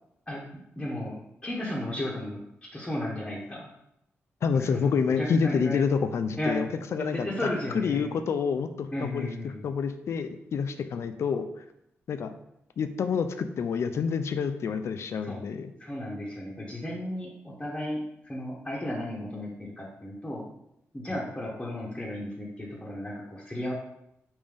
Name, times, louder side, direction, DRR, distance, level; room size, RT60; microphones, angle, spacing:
voice 1, 0.8-1.2 1.4-2.4 2.7-3.7 4.7-5.8 6.4-6.6 7.0-8.1 8.9-9.7 15.2-15.4 15.8-20.4 20.9-23.7, left 1 dB, 15° left, -5 dB, 0.9 m, -34 dB
voice 2, 4.4-11.6 12.1-12.3 12.8-15.7, left 6 dB, 65° left, 9 dB, 0.3 m, -28 dB
5.2 x 2.6 x 3.4 m, 0.81 s
cardioid pair, 95°, 5 cm